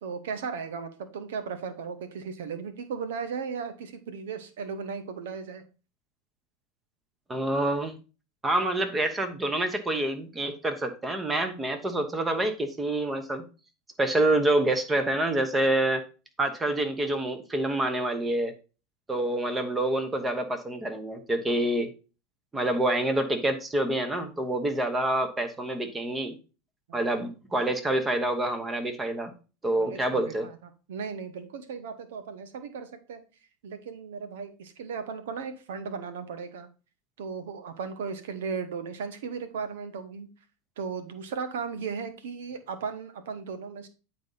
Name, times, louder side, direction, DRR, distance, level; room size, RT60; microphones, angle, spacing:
voice 1, 0.0-5.6 26.9-27.0 29.7-30.6 30.9-33.2 33.6-36.7 37.2-40.3 40.8-43.9, right 6 dB, 90° right, 10 dB, 1.1 m, -36 dB
voice 2, 7.3-8.0 8.4-13.4 14.0-16.0 16.4-18.5 19.1-21.9 22.5-26.4 26.9-29.3 29.6-30.5, right 1 dB, 15° right, 8 dB, 1.0 m, -27 dB
8.7 x 4.0 x 3.9 m, 0.34 s
supercardioid pair, 135°, 0 cm